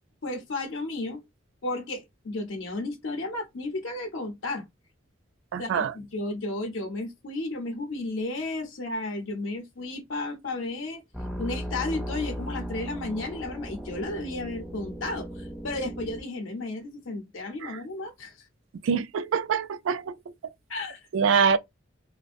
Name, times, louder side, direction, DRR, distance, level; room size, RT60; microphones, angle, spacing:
voice 1, 0.2-1.2 1.6-4.6 5.6-11.0 11.4-18.4 20.7-21.1, left 2 dB, 80° left, 0.6 m, -33 dB
voice 2, 5.5-5.9 17.6-17.8 18.8-20.2 21.1-21.6, right 6 dB, 75° right, 0.3 m, -24 dB
sound 1, 11.1-16.2, equal, ahead, 0.4 m, -36 dB
2.4 x 2.1 x 2.5 m
head